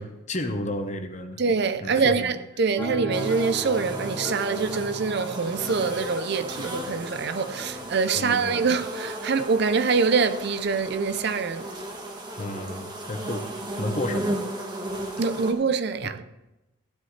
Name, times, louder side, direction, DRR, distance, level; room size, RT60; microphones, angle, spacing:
voice 1, 0.0-1.4 1.8-2.3 8.2-8.6 12.4-13.5 13.8-14.4, left 1 dB, 35° left, 1.1 m, -32 dB
voice 2, 1.4-11.7 15.2-16.2, right 5 dB, 50° right, 0.5 m, -25 dB
sound 1, 2.8-8.8, equal, 10° left, 0.9 m, -39 dB
sound 2, 3.1-15.5, right 1 dB, 20° right, 1.3 m, -35 dB
15.5 x 11.0 x 3.3 m
head